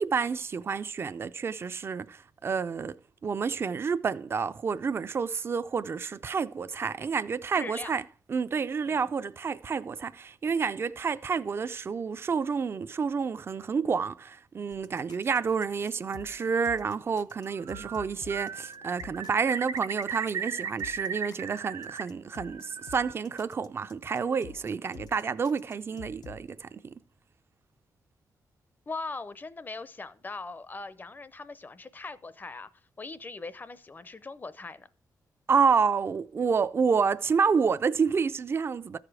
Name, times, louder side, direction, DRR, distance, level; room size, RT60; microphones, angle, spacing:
voice 1, 0.0-2.9 3.2-8.0 8.3-26.9 35.5-39.0, right 5 dB, 35° right, 0.4 m, -29 dB
voice 2, 7.5-7.9 8.8-9.1 28.9-32.7 33.0-34.9, left 3 dB, 30° left, 0.5 m, -40 dB
sound 1, 14.7-26.5, left 9 dB, 80° left, 0.6 m, -51 dB
Bird, 17.5-18.0 18.3-22.0 22.3-23.1, right 6 dB, 85° right, 0.8 m, -36 dB
13.5 x 5.0 x 4.8 m
cardioid pair, 110°, 7 cm